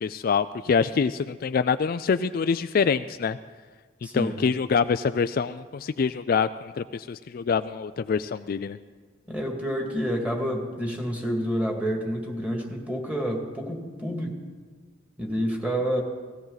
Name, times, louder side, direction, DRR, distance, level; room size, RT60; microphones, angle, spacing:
voice 1, 0.0-3.4 4.1-8.8, left 5 dB, 50° left, 11 dB, 0.3 m, -25 dB
voice 2, 4.0-4.4 9.3-14.4 15.2-16.0, equal, 5° right, 1 dB, 2.2 m, -28 dB
18.0 x 16.5 x 4.0 m, 1.4 s
head